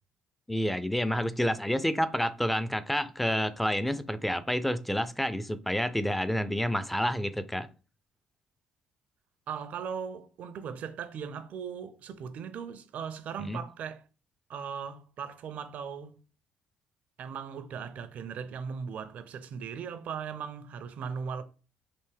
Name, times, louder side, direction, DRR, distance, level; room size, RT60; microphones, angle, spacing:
voice 1, 0.5-7.7 13.4-13.6, equal, 5° left, 0.4 m, -29 dB
voice 2, 9.5-14.0 14.5-16.2 17.2-21.4, right 6 dB, 65° right, 0.4 m, -38 dB
3.4 x 2.6 x 3.3 m
supercardioid pair, 70°, 3 cm